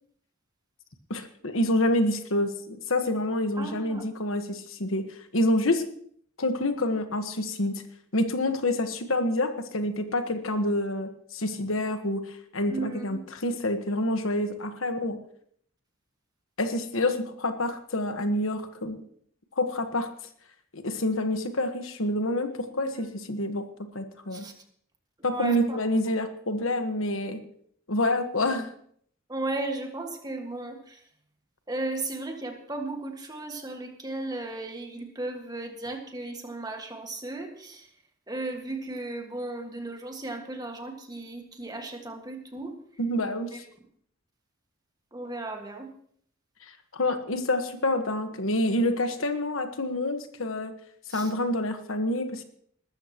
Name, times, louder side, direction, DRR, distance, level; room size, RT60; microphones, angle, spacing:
voice 1, 1.1-5.0 5.3-5.8 6.4-7.8 8.1-15.2 16.6-19.0 19.6-20.1 20.7-23.6 23.9-24.5 25.2-27.4 27.9-28.7 43.0-43.6 46.9-50.7 51.1-52.4, left 1 dB, 80° left, 8 dB, 1.4 m, -27 dB
voice 2, 3.6-4.0 12.7-13.2 22.8-23.1 24.3-24.5 25.2-25.8 29.3-31.0 31.7-37.9 38.3-42.7 43.5-43.6 45.1-45.9 51.1-51.3, right 2 dB, 20° right, 3 dB, 1.7 m, -35 dB
20.5 x 13.0 x 3.0 m, 0.63 s
head